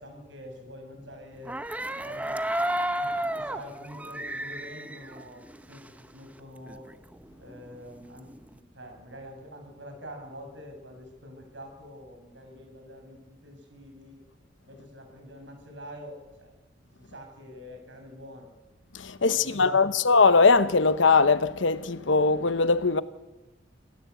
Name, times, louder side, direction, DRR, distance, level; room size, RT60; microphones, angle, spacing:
voice 1, 0.0-1.6 2.0-2.4 2.9-5.8 6.1-6.9 7.3-14.2 14.7-16.6 17.0-18.5 19.1-20.0, equal, 70° right, 6.7 m, -46 dB
sound 1, 1.5-6.1 6.4-6.5 6.7-8.5, right 1 dB, 10° right, 0.8 m, -32 dB
voice 2, 18.9-23.0, left 4 dB, 80° left, 1.0 m, -21 dB
27.5 x 14.5 x 8.3 m
head